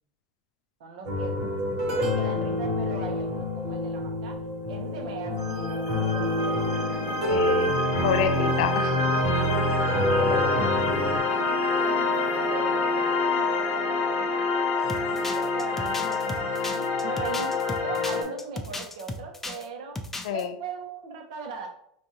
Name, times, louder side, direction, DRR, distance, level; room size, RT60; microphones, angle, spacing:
voice 1, 0.8-4.4 4.7-7.5 9.6-10.4 11.8-14.6 15.1-20.0 20.3-21.7, right 5 dB, 75° right, 2 dB, 0.9 m, -39 dB
sound 1, 1.1-11.2, left 1 dB, 55° right, 1.2 m, -27 dB
sound 2, 5.4-18.2, left 3 dB, 50° left, 0.8 m, -27 dB
voice 2, 7.3-7.8 8.0-9.0 10.2-10.7 20.2-20.5, left 9 dB, 70° left, 9 dB, 0.4 m, -28 dB
sound 3, 14.9-19.7 19.9-20.4, left 2 dB, 10° left, 0.3 m, -35 dB
4.8 x 2.6 x 2.8 m, 0.71 s
supercardioid pair, 150°, 4 cm